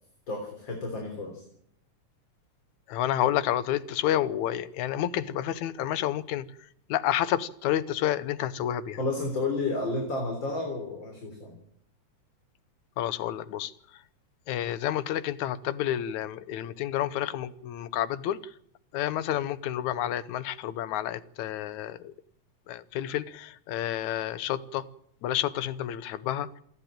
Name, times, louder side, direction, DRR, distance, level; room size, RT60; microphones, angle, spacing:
voice 1, 0.3-1.4 9.0-11.6, left 2 dB, 35° left, 3 dB, 4.2 m, -31 dB
voice 2, 2.9-6.5 6.9-9.0 13.0-13.7 14.5-18.5 18.9-22.1 22.7-24.9 25.2-26.6, left 12 dB, 75° left, 15 dB, 2.3 m, -30 dB
28.0 x 10.5 x 9.0 m, 0.68 s
omnidirectional pair, 3.5 m